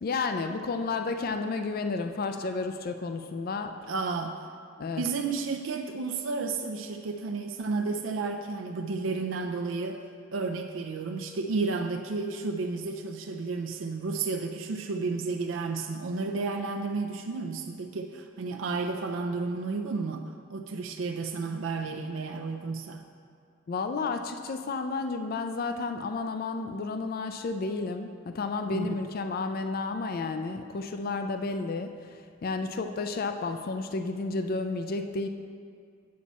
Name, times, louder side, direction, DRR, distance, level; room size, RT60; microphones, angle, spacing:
voice 1, 0.0-3.8 4.8-5.0 23.7-35.3, left 3 dB, 50° left, 7 dB, 0.4 m, -32 dB
voice 2, 3.9-4.4 5.0-10.0 10.3-23.0 28.7-28.8, right 4 dB, 80° right, 4 dB, 0.5 m, -32 dB
8.4 x 7.2 x 4.2 m, 2.2 s
head